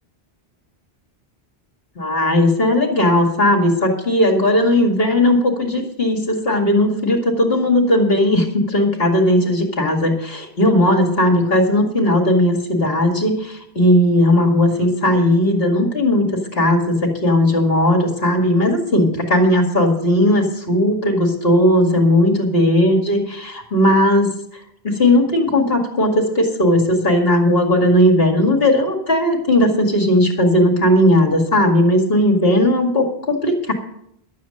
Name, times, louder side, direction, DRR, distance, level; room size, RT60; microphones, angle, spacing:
voice 1, 2.0-24.3 24.8-33.7, left 1 dB, 65° left, 2 dB, 2.4 m, -16 dB
12.0 x 7.2 x 7.7 m, 0.75 s
omnidirectional pair, 1.1 m